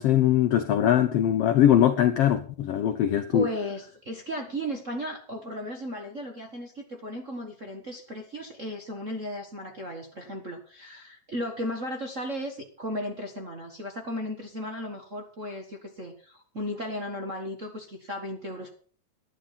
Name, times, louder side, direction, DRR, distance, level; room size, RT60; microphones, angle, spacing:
voice 1, 0.0-3.4, left 11 dB, 85° left, 1.3 m, -21 dB
voice 2, 3.3-18.7, equal, 40° right, 1.1 m, -35 dB
11.5 x 11.0 x 5.7 m
omnidirectional pair, 3.8 m